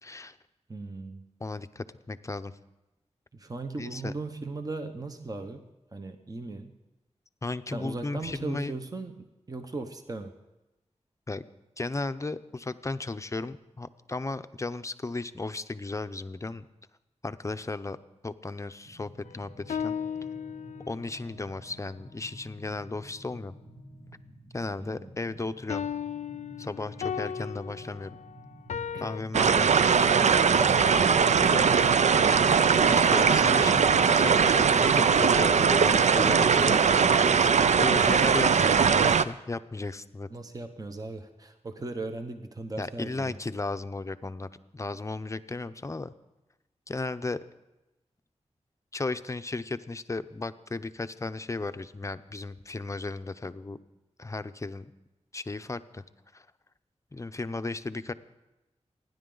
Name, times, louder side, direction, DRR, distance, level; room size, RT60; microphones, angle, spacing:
voice 1, 0.0-0.4 1.4-2.5 3.8-4.1 7.4-8.7 11.3-11.4 11.8-16.6 17.2-18.0 18.2-20.0 20.8-23.5 24.5-25.9 26.6-28.2 29.0-29.8 31.4-31.9 32.9-36.8 37.8-40.3 42.8-46.1 46.9-47.4 48.9-53.8 54.2-54.9 55.3-56.0 56.3-56.5 57.1-58.1, left 3 dB, 25° left, 11 dB, 0.6 m, -35 dB
voice 2, 0.7-1.3 3.3-6.7 7.7-10.3 24.8-25.1 28.9-29.1 40.3-43.3, right 3 dB, 30° right, 7 dB, 0.9 m, -38 dB
sound 1, 18.9-38.0, right 1 dB, 50° right, 2.1 m, -50 dB
sound 2, 19.2-21.1 25.7-29.2, left 7 dB, 85° left, 0.4 m, -35 dB
sound 3, 29.3-39.2, right 6 dB, 75° right, 0.5 m, -21 dB
28.5 x 10.5 x 3.9 m, 1.0 s
wide cardioid pair, 110°, 12 cm